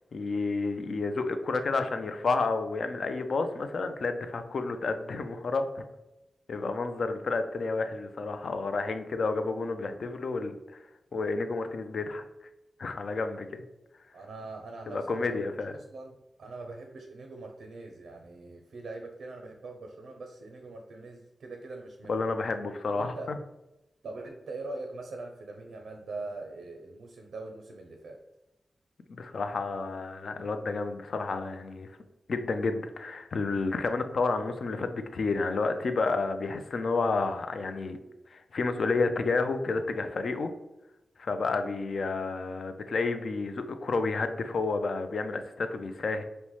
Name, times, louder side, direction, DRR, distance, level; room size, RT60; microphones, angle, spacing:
voice 1, 0.1-5.9 6.5-10.5 11.1-12.3 12.8-13.6 14.9-15.7 22.1-23.4 29.1-31.9 32.3-38.0 38.3-40.5 41.2-46.2, left 3 dB, 65° left, 8 dB, 0.4 m, -30 dB
voice 2, 14.1-15.4 15.9-22.3 22.9-23.3 24.0-28.2, right 2 dB, 90° right, 3 dB, 0.5 m, -42 dB
5.4 x 2.1 x 3.0 m, 0.95 s
wide cardioid pair, 90°, 0 cm